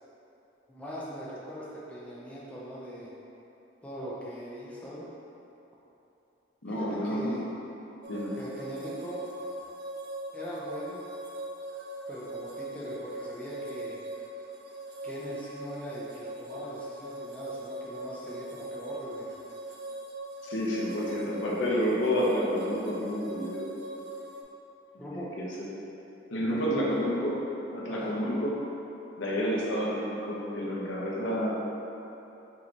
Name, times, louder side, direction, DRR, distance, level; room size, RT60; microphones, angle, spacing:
voice 1, 0.7-3.1 3.8-5.1 6.7-7.4 8.3-9.2 10.3-11.0 12.1-14.0 15.0-19.3 25.0-25.3 26.5-27.1 27.9-28.1, equal, 5° left, -7 dB, 0.5 m, -41 dB
voice 2, 6.6-7.4 8.1-8.3 20.4-23.6 25.1-25.7 26.3-27.4 27.7-28.6 29.2-31.6, equal, 85° left, -4 dB, 0.8 m, -29 dB
sound 1, 8.0-24.4, right 1 dB, 60° right, 0.5 m, -41 dB
4.8 x 3.2 x 2.8 m, 3.0 s
head